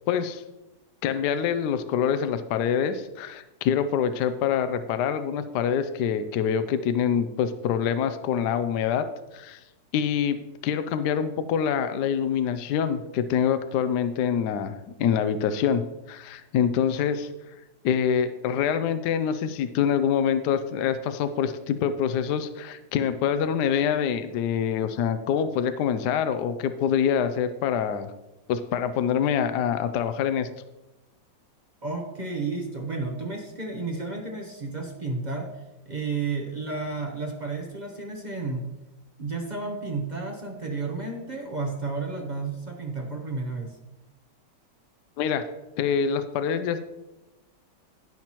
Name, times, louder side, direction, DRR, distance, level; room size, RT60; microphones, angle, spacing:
voice 1, 0.1-0.4 1.0-9.0 9.3-9.6 9.9-15.8 16.1-17.3 17.8-28.1 28.5-30.5 45.2-45.5 45.8-46.9, left 8 dB, 70° left, 11 dB, 1.1 m, -25 dB
voice 2, 31.8-38.6 39.2-43.8, right 3 dB, 35° right, 1 dB, 0.7 m, -32 dB
16.5 x 5.8 x 3.0 m, 1.0 s
omnidirectional pair, 1.9 m